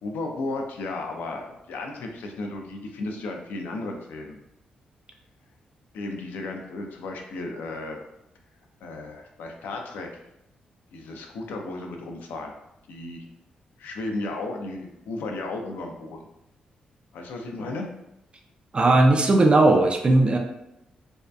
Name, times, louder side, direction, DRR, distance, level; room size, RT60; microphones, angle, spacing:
voice 1, 0.0-4.4 5.9-8.0 8.8-10.1 10.9-12.5 12.9-13.3 13.8-16.2 17.1-17.9, left 2 dB, 80° left, 2 dB, 0.4 m, -34 dB
voice 2, 18.7-20.4, right 2 dB, 35° right, 3 dB, 0.4 m, -17 dB
2.6 x 2.2 x 2.2 m, 0.86 s
supercardioid pair, 50°, 3 cm